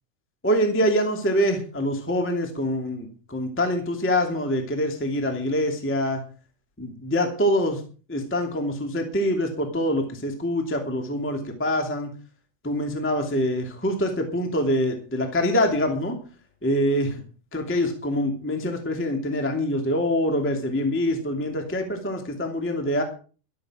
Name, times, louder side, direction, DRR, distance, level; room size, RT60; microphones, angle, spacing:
voice 1, 0.4-6.2 6.8-7.8 8.1-12.1 12.6-16.2 16.6-17.1 17.5-23.0, equal, 5° left, 4 dB, 1.9 m, -25 dB
13.5 x 13.0 x 5.1 m, 0.37 s
omnidirectional pair, 4.4 m